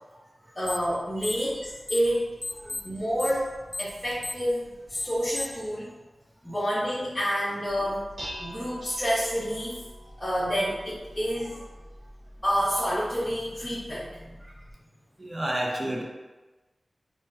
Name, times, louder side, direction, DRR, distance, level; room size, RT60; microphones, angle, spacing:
voice 1, 0.5-2.3 2.8-3.5 3.8-5.9 6.4-8.0 8.4-9.8 10.2-11.6 12.4-14.3, equal, 10° left, -12 dB, 1.0 m, -28 dB
sound 1, 0.7-0.9 1.2-2.1 2.4-5.7, left 2 dB, 40° left, 0.6 m, -34 dB
voice 2, 1.2-1.5 2.6-2.8 11.5-11.6 14.4-14.5 15.2-16.0, right 1 dB, 30° right, -2 dB, 0.5 m, -32 dB
Dishes pots and pans, 7.7-14.7, equal, 90° right, 1.2 m, -45 dB
5.4 x 2.1 x 2.7 m, 1.2 s
wide cardioid pair, 95°, 0 cm